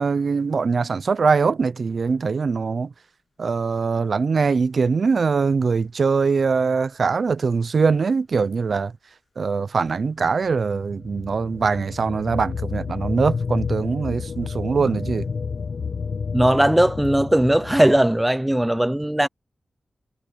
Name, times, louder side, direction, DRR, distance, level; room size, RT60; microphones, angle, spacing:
voice 1, 0.0-2.9 3.4-8.9 9.4-15.3, right 5 dB, 50° right, 0.6 m, -22 dB
sound 1, 10.4-18.0, left 5 dB, 60° left, 0.5 m, -30 dB
voice 2, 16.3-19.3, right 1 dB, 10° right, 0.5 m, -18 dB
wide cardioid pair, 160°, 0 cm